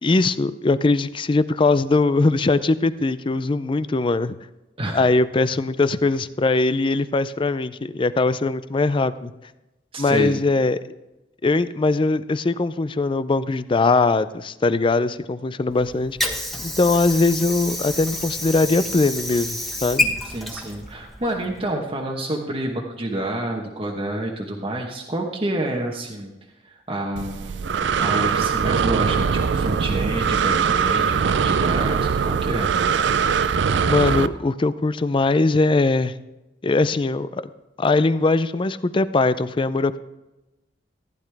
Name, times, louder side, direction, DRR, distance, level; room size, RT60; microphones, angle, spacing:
voice 1, 0.0-4.4 4.9-9.3 10.0-10.8 11.4-16.2 16.6-20.1 33.9-36.1 36.6-37.4 37.8-40.0, left 3 dB, 30° left, 14 dB, 0.4 m, -21 dB
voice 2, 9.9-10.4 20.2-26.3 26.6-32.7, right 1 dB, 30° right, 0 dB, 1.1 m, -28 dB
Water / Sink (filling or washing), 15.7-21.7, left 1 dB, ahead, 1.3 m, -29 dB
Breathing, 27.2-34.3, right 6 dB, 70° right, 0.4 m, -21 dB
15.0 x 10.5 x 3.4 m, 1.0 s
head